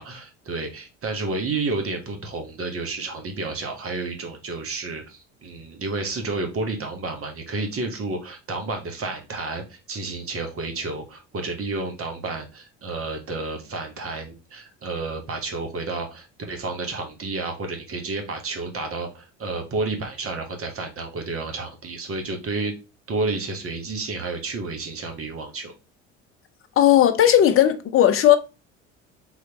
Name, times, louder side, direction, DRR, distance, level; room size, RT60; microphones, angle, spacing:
voice 1, 0.0-22.7 23.1-25.7, right 3 dB, 35° right, 1.3 m, -31 dB
voice 2, 26.8-28.4, left 11 dB, 35° left, 0.6 m, -16 dB
3.9 x 3.1 x 2.9 m
hypercardioid pair, 65°, 37 cm